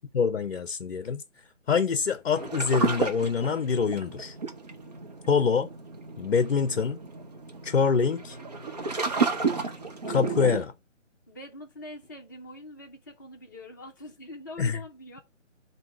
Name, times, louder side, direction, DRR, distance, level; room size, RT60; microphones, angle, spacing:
voice 1, 0.1-1.2 1.7-4.3 5.3-5.7 6.2-7.0 7.6-8.4 10.1-10.7 14.6-14.8, left 5 dB, 55° left, 0.6 m, -25 dB
sound 1, 2.3-10.6, right 4 dB, 35° right, 0.8 m, -32 dB
voice 2, 11.3-15.2, left 1 dB, 15° left, 0.7 m, -44 dB
7.0 x 2.8 x 5.8 m
figure-of-eight pair, 155°, 37 cm